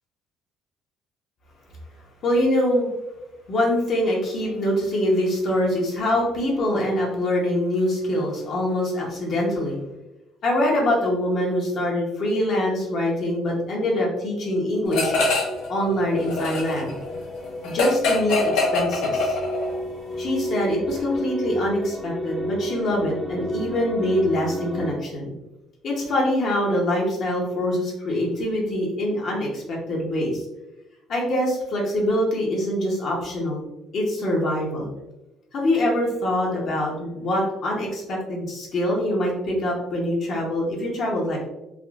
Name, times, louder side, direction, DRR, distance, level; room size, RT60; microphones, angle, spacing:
voice 1, 2.2-2.9 3.5-9.8 10.4-15.1 15.7-17.0 17.6-19.3 20.2-25.3 25.8-30.4 31.1-33.6 33.9-34.9 35.5-41.5, left 1 dB, 50° left, -2 dB, 0.7 m, -24 dB
sound 1, 14.9-15.7 16.0-19.8, left 3 dB, 85° left, 0.9 m, -24 dB
sound 2, 14.9-24.9, equal, 10° left, 0.5 m, -32 dB
3.5 x 2.5 x 2.3 m, 0.96 s
cardioid pair, 140°, 0 cm